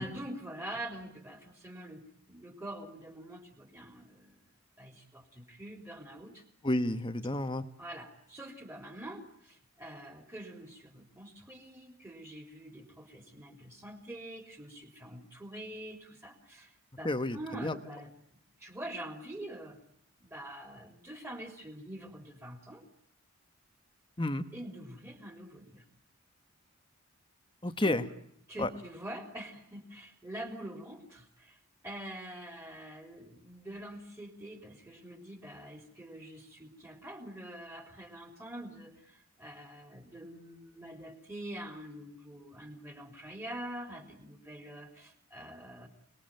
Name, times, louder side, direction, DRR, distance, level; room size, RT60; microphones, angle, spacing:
voice 1, 0.0-2.0 2.3-4.4 4.8-6.4 7.8-19.8 20.2-22.9 24.5-25.8 27.8-28.0 28.5-45.9, right 1 dB, 10° right, 4 dB, 3.7 m, -45 dB
voice 2, 6.6-7.6 17.0-17.4 17.6-17.7 24.2-24.4 27.6-28.0 28.6-28.7, left 1 dB, 20° left, 10 dB, 1.3 m, -30 dB
29.0 x 21.0 x 9.2 m, 0.72 s
head